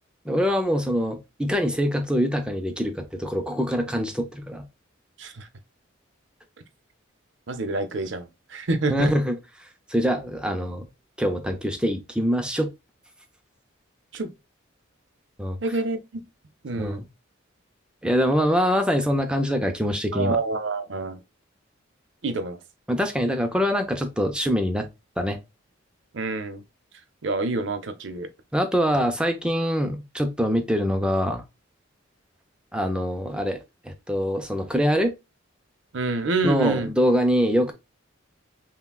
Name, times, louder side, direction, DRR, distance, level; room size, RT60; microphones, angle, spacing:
voice 1, 0.3-4.7 8.9-9.4 9.9-10.9 11.2-12.7 15.4-15.6 16.7-17.1 18.0-20.4 22.9-24.9 25.2-25.4 28.5-31.4 32.7-35.1 36.4-37.7, equal, 5° right, 0.5 m, -24 dB
voice 2, 7.5-9.1 14.1-14.3 15.6-16.2 16.6-17.0 20.1-21.2 22.2-22.6 26.1-26.6 27.2-28.3 35.9-36.9, right 3 dB, 65° right, 0.6 m, -27 dB
5.7 x 2.2 x 2.3 m
head